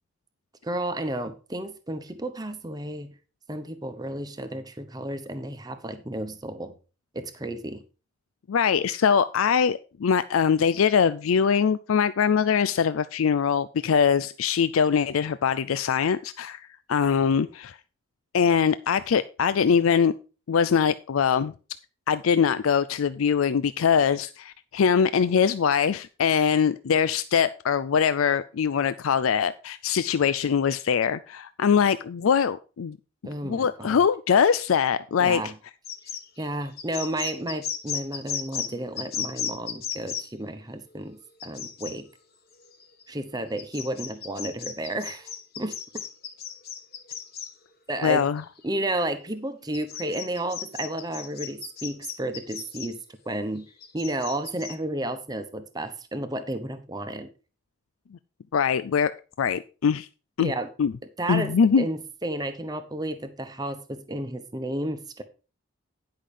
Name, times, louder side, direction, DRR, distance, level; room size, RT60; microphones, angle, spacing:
voice 1, 0.6-3.1 3.5-6.7 7.1-7.8 33.2-34.0 35.2-35.5 36.4-42.1 43.1-45.7 47.9-48.2 48.6-53.0 53.3-53.6 53.9-57.3 60.4-60.7 61.2-65.2, right 1 dB, 20° right, 8 dB, 1.0 m, -32 dB
voice 2, 8.5-17.8 18.3-20.1 20.5-21.5 22.1-33.0 33.4-35.5 48.0-48.4 58.5-59.1 59.4-60.1 60.4-60.5 60.8-60.9 61.3-61.9, left 7 dB, 90° left, 14 dB, 0.4 m, -22 dB
sound 1, 35.8-38.7 39.0-40.2 41.4-42.0 42.6-43.0 43.6-47.5 48.4-48.5 49.7-52.9 53.6-54.8, left 8 dB, 50° left, 1.3 m, -35 dB
10.5 x 5.7 x 5.0 m, 0.34 s
head